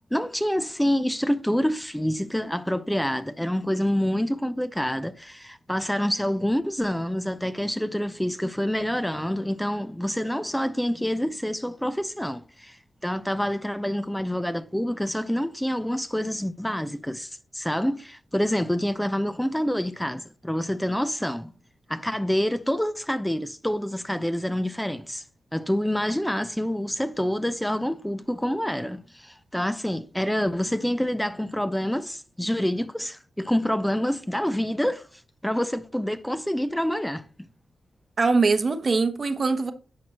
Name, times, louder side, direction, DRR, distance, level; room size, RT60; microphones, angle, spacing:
voice 1, 0.1-21.5 21.9-25.2 25.5-37.3, equal, 5° left, 0.6 m, -27 dB
voice 2, 38.2-39.7, right 4 dB, 50° right, 1.0 m, -22 dB
10.5 x 4.5 x 3.0 m
cardioid pair, 55°, 0 cm